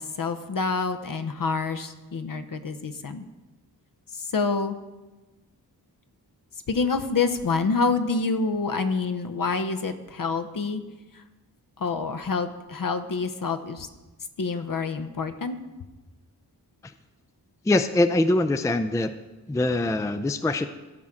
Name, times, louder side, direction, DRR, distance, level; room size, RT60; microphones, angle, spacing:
voice 1, 0.0-3.2 4.2-4.7 6.7-10.8 11.1-11.2 11.8-13.9 14.4-15.6, left 4 dB, 55° left, 9 dB, 0.9 m, -27 dB
voice 2, 17.6-19.1 19.5-20.7, left 2 dB, 10° left, 10 dB, 0.4 m, -23 dB
15.5 x 5.8 x 3.7 m, 1.2 s
cardioid pair, 50°, 41 cm